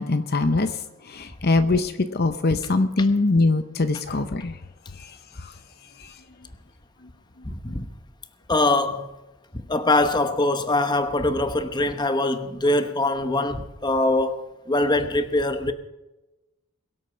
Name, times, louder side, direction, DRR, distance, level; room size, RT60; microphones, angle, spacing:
voice 1, 0.0-4.6 5.0-5.5 6.0-6.1, left 3 dB, 45° left, 0.7 m, -23 dB
voice 2, 7.4-7.9 8.5-9.1 9.7-15.7, left 2 dB, 20° left, 0.9 m, -23 dB
22.5 x 8.2 x 5.7 m
head